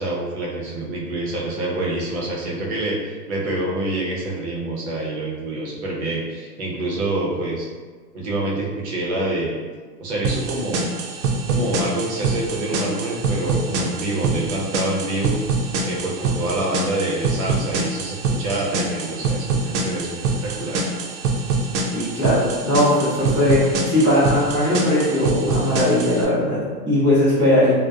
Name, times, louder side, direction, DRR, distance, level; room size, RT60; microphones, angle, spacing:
voice 1, 0.0-7.7 8.1-9.6 10.0-10.9 11.5-15.4 15.8-20.9, right 2 dB, 45° right, -4 dB, 0.7 m, -26 dB
sound 1, 10.2-26.2, right 3 dB, 85° right, 0.6 m, -25 dB
voice 2, 21.9-27.7, left 1 dB, 5° left, -22 dB, 0.4 m, -19 dB
2.5 x 2.1 x 2.3 m, 1.5 s
hypercardioid pair, 135°, 49 cm